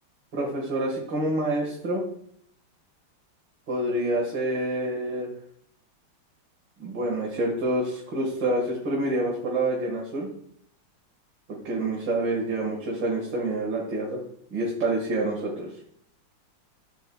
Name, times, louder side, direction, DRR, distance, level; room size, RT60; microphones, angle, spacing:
voice 1, 0.3-2.0 3.7-5.3 6.8-10.3 11.5-14.2 14.5-15.7, right 1 dB, 60° right, -3 dB, 2.4 m, -27 dB
14.0 x 8.4 x 2.3 m, 0.68 s
omnidirectional pair, 2.3 m